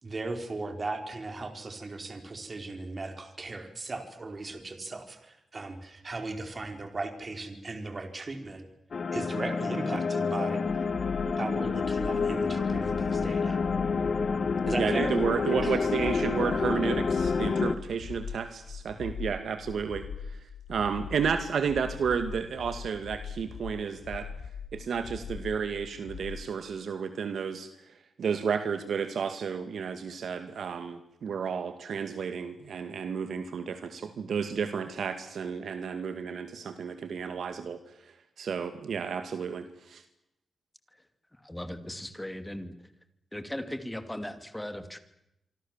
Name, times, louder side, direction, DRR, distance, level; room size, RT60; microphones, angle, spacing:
voice 1, 0.0-8.7 9.1-10.9 11.4-13.6 14.6-15.1 15.5-15.8, right 3 dB, 35° right, 7 dB, 4.2 m, -37 dB
sound 1, 8.9-17.7, left 5 dB, 50° left, 1.6 m, -28 dB
sound 2, 10.7-26.5, left 6 dB, 90° left, 1.8 m, -41 dB
voice 2, 14.8-20.4 20.7-24.3 24.7-37.8 38.1-40.0, right 6 dB, 75° right, 9 dB, 2.1 m, -32 dB
voice 3, 41.4-42.7 43.3-45.0, left 1 dB, 10° left, 10 dB, 2.6 m, -38 dB
27.0 x 24.5 x 7.4 m, 0.86 s
wide cardioid pair, 115°, 0 cm